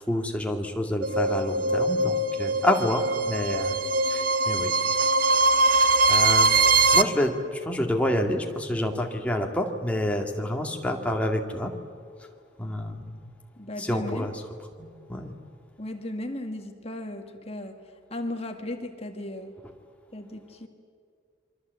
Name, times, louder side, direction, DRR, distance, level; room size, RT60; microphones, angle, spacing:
voice 1, 0.1-3.8 4.0-4.7 5.8-11.7 12.6-13.3 13.8-14.4 14.8-15.3, left 1 dB, 5° left, 2 dB, 2.1 m, -28 dB
sound 1, 1.0-7.0, right 3 dB, 50° right, 0.9 m, -22 dB
voice 2, 13.6-14.3 15.8-17.8 18.1-19.5 20.1-20.7, left 1 dB, 30° left, 5 dB, 1.9 m, -35 dB
28.0 x 24.0 x 8.3 m, 2.1 s
head